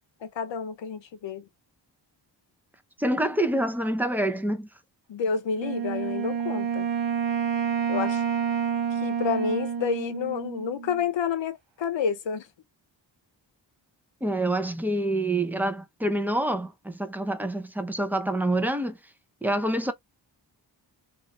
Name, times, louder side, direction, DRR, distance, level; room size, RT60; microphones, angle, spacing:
voice 1, 0.2-1.5 5.1-6.9 7.9-8.2 9.0-12.5, left 6 dB, 75° left, 0.7 m, -29 dB
voice 2, 3.0-4.7 14.2-19.0 19.4-19.9, right 1 dB, 5° right, 0.5 m, -26 dB
Wind instrument woodwind instrument, 5.6-11.0, right 7 dB, 70° right, 0.8 m, -28 dB
3.0 x 2.5 x 2.5 m
wide cardioid pair, 80°, 45 cm